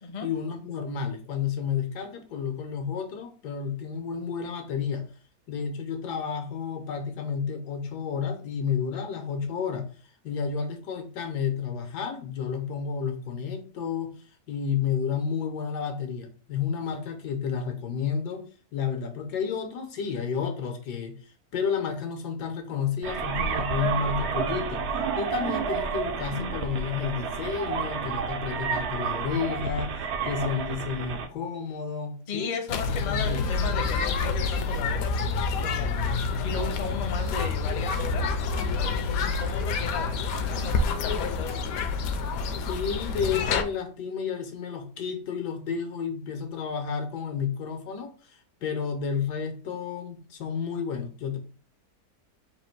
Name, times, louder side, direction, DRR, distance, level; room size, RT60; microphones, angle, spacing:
voice 1, 0.2-5.1 5.5-9.9 10.2-14.1 14.5-18.4 18.7-21.2 21.5-24.8 25.1-32.5 32.9-33.4 42.6-51.4, left 6 dB, 85° left, 5 dB, 1.5 m, -31 dB
sound 1, 23.0-31.3, right 6 dB, 65° right, 0.7 m, -30 dB
voice 2, 32.3-41.6, left 4 dB, 45° left, 5 dB, 0.6 m, -36 dB
sound 2, 32.7-43.6, left 4 dB, 70° left, 1.0 m, -28 dB
4.1 x 2.5 x 4.4 m, 0.37 s
omnidirectional pair, 1.7 m